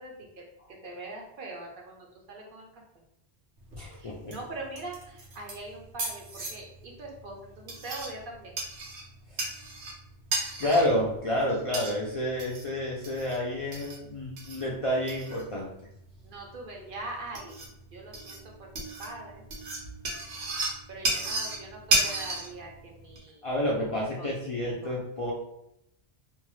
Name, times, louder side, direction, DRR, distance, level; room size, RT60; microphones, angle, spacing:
voice 1, 0.0-2.7 4.0-8.6 10.6-11.0 16.2-19.4 20.9-23.5 23.9-24.3 24.6-25.0, right 2 dB, 60° right, 0 dB, 0.7 m, -42 dB
sound 1, 3.6-23.2, right 2 dB, 90° right, 1.0 m, -35 dB
voice 2, 3.8-4.3 9.3-9.4 10.6-15.7 23.4-25.3, equal, 50° left, -5 dB, 0.4 m, -29 dB
2.6 x 2.3 x 3.0 m, 0.80 s
omnidirectional pair, 1.0 m